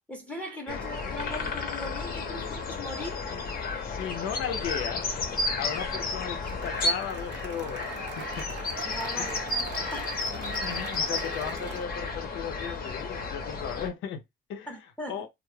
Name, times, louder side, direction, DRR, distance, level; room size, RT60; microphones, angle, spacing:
voice 1, 0.1-3.2 8.8-10.3 14.7-15.2, left 1 dB, 5° left, 0.7 m, -40 dB
voice 2, 0.7-1.1 2.2-2.6 3.2-3.5 3.8-5.3 5.6-8.6 9.2-9.4 10.3-14.2 14.5-14.8 15.1-15.3, left 8 dB, 85° left, 0.6 m, -36 dB
sound 1, 0.7-13.9, left 3 dB, 50° left, 0.7 m, -32 dB
Cheering / Applause, 6.4-11.8, right 6 dB, 60° right, 0.6 m, -41 dB
2.2 x 2.0 x 3.1 m
cardioid pair, 90°, 20 cm